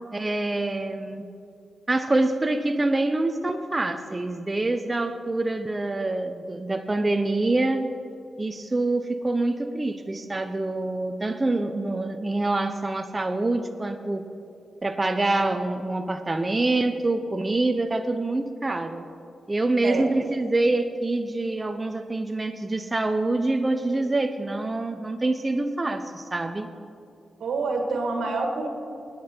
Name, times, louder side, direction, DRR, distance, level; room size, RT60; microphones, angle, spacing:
voice 1, 0.1-1.3 1.9-7.9 8.4-14.2 14.8-19.1 19.5-26.7, right 2 dB, 30° right, 6 dB, 0.8 m, -26 dB
voice 2, 27.4-28.7, right 3 dB, 75° right, 3 dB, 1.7 m, -27 dB
20.0 x 8.5 x 4.5 m, 2.6 s
supercardioid pair, 50°, 0 cm